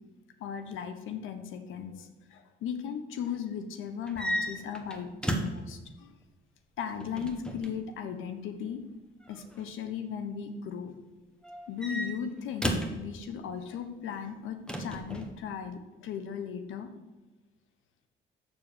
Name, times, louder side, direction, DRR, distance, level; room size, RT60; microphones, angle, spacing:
voice 1, 0.4-6.1 6.8-8.8 9.3-10.9 11.7-16.9, left 7 dB, 85° left, 8 dB, 1.2 m, -37 dB
sound 1, 4.1-5.7 7.0-7.8 9.2-9.6 11.4-13.0 14.7-15.3, equal, 5° left, 1.3 m, -34 dB
6.8 x 6.7 x 6.8 m, 1.2 s
cardioid pair, 90°, 20 cm